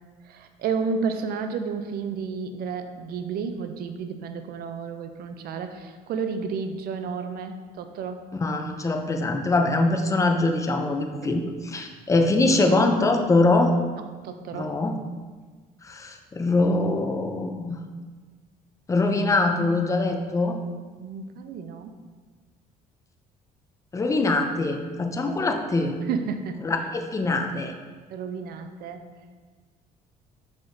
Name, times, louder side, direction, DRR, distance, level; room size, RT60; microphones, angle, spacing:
voice 1, 0.3-8.2 11.2-11.4 14.0-14.7 21.0-21.9 26.1-26.6 28.1-29.0, right 5 dB, 65° right, 7 dB, 0.4 m, -31 dB
voice 2, 8.4-13.7 14.5-14.9 15.8-17.8 18.9-20.6 23.9-25.9 26.6-27.7, left 2 dB, 20° left, 4 dB, 0.4 m, -23 dB
5.7 x 3.6 x 2.6 m, 1.4 s
cardioid pair, 110°, 17 cm